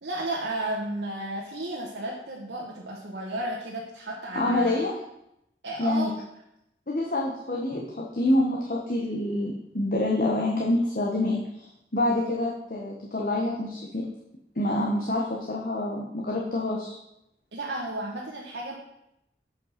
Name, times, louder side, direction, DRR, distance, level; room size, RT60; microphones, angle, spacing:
voice 1, 0.0-4.8 5.6-6.1 12.1-12.3 17.5-18.7, right 1 dB, 85° right, -4 dB, 1.3 m, -33 dB
voice 2, 4.3-5.0 5.8-6.1 6.9-11.7 11.9-14.0 14.6-16.9, left 1 dB, 50° left, -2 dB, 1.1 m, -27 dB
8.0 x 5.3 x 5.8 m, 0.82 s
head